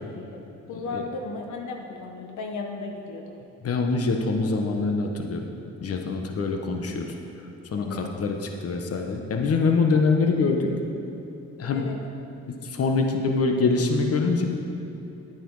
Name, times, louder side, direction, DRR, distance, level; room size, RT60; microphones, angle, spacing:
voice 1, 0.1-0.4 0.7-3.4 7.7-8.1 10.1-10.2 11.7-12.0, left 3 dB, 75° left, 2 dB, 1.1 m, -35 dB
voice 2, 3.6-5.5 5.8-7.1 7.7-10.7 11.6-11.9 12.5-14.5, left 4 dB, 50° left, 3 dB, 1.2 m, -24 dB
11.0 x 9.1 x 4.8 m, 2.8 s
cardioid pair, 90°, 30 cm